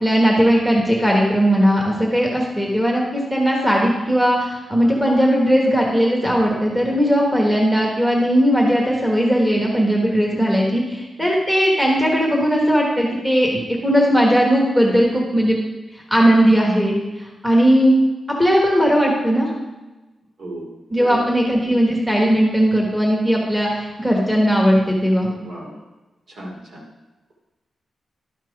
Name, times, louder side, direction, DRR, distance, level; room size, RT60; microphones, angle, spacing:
voice 1, 0.0-13.5 13.8-15.6 15.9-17.9 18.4-19.5 20.9-25.3, equal, 5° right, -2 dB, 1.4 m, -18 dB
voice 2, 20.4-20.7 21.0-21.2 25.3-25.8 26.3-26.8, right 1 dB, 65° right, -2 dB, 2.7 m, -34 dB
11.5 x 5.9 x 4.7 m, 1.1 s
wide cardioid pair, 160°, 0 cm